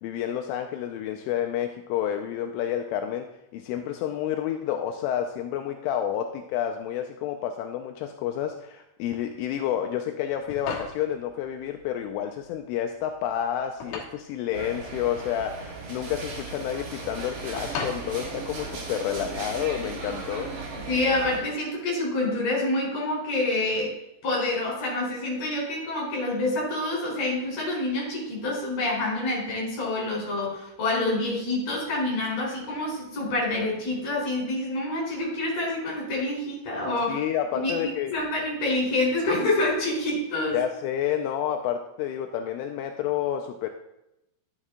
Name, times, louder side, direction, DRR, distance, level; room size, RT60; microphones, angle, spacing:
voice 1, 0.0-20.5 37.1-38.2 40.5-43.7, left 10 dB, 85° left, 5 dB, 3.0 m, -29 dB
sound 1, 10.2-19.2, left 5 dB, 65° left, 2.9 m, -40 dB
sound 2, 14.5-21.4, right 4 dB, 85° right, 1.3 m, -37 dB
voice 2, 20.8-23.9 24.2-37.2 37.5-40.6, left 2 dB, 35° left, -3 dB, 4.1 m, -27 dB
11.0 x 7.3 x 3.6 m, 0.84 s
omnidirectional pair, 5.8 m